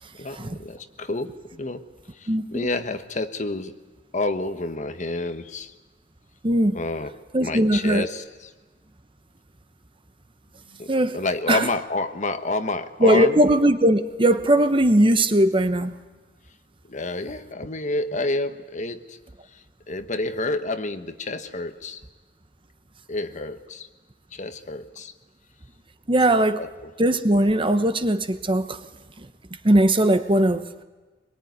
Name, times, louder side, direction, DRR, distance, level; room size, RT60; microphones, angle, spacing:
voice 1, 0.1-1.8 2.1-3.8 4.1-5.7 6.7-8.2 10.7-13.4 16.9-19.2 19.5-22.0 23.1-23.9 24.3-25.1 26.3-26.7, left 2 dB, 40° left, 9 dB, 1.2 m, -29 dB
voice 2, 2.3-2.7 6.4-6.8 7.3-8.1 10.9-11.2 11.5-11.7 13.0-15.9 26.1-26.6 27.0-28.8 29.2-29.3 29.6-30.6, right 1 dB, 30° right, 10 dB, 1.0 m, -19 dB
23.5 x 22.5 x 9.5 m, 1.2 s
head